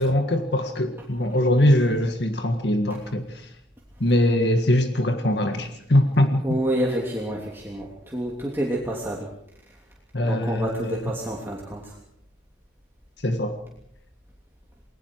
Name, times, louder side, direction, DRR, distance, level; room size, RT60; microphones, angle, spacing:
voice 1, 0.0-3.4 4.0-6.6 10.1-11.0 13.2-13.5, left 1 dB, 70° left, 6 dB, 1.8 m, -22 dB
voice 2, 6.4-9.3 10.2-12.0, right 1 dB, 15° right, -3 dB, 3.0 m, -28 dB
29.5 x 21.0 x 4.8 m, 0.72 s
head